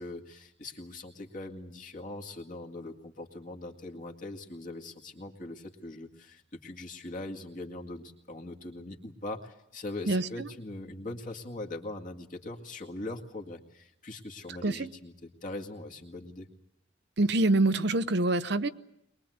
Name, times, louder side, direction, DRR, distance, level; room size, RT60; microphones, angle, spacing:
voice 1, 0.0-16.5, left 2 dB, 45° left, 1 dB, 2.1 m, -41 dB
voice 2, 10.1-10.5 14.6-14.9 17.2-18.7, right 2 dB, 60° right, 11 dB, 0.8 m, -26 dB
22.5 x 21.5 x 8.0 m, 0.78 s
head